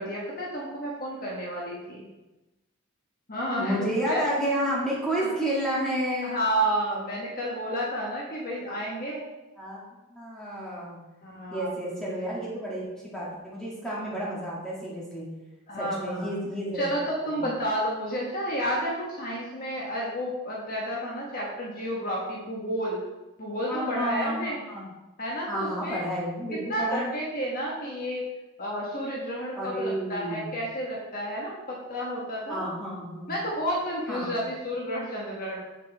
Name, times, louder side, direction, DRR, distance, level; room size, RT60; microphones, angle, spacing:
voice 1, 0.0-2.0 3.3-4.2 5.2-5.3 6.2-9.2 11.2-11.7 15.7-16.3 16.7-23.0 23.4-24.6 25.2-26.0 26.7-28.2 28.6-32.7 33.3-35.6, equal, 40° left, -3 dB, 1.4 m, -31 dB
voice 2, 3.6-6.4 9.6-11.0 11.5-15.3 15.8-16.9 17.3-17.6 23.7-24.9 25.5-27.1 29.6-30.5 32.5-33.4 34.1-34.4, right 1 dB, 5° left, -7 dB, 2.2 m, -31 dB
7.5 x 7.0 x 3.5 m, 1.0 s
head